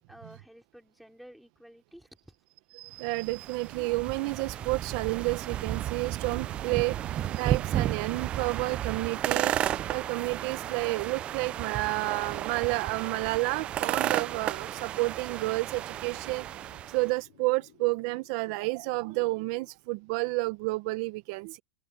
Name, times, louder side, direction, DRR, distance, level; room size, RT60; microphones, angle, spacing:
voice 1, 0.1-2.3, equal, ahead, 4.0 m, -52 dB
voice 2, 2.7-21.6, right 23 dB, 55° right, 0.7 m, -31 dB
sound 1, 3.1-17.1, right 12 dB, 30° right, 0.4 m, -33 dB
sound 2, 4.4-19.7, left 18 dB, 70° left, 5.4 m, -60 dB
open air
supercardioid pair, 140°, 4 cm